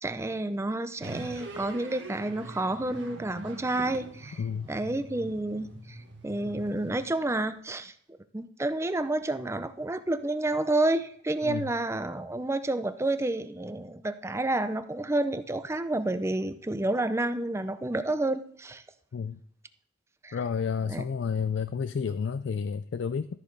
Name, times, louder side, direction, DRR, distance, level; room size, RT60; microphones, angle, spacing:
voice 1, 0.0-4.4 4.7-6.0 6.2-7.9 8.3-18.8 20.2-20.4 20.9-21.0, right 2 dB, 15° right, 11 dB, 0.5 m, -30 dB
sound 1, 1.0-7.4, right 2 dB, 70° right, 1.7 m, -44 dB
voice 2, 4.4-4.7 11.4-11.7 19.1-19.4 20.3-23.3, left 6 dB, 65° left, 12 dB, 0.3 m, -30 dB
13.5 x 6.4 x 3.9 m, 0.62 s
head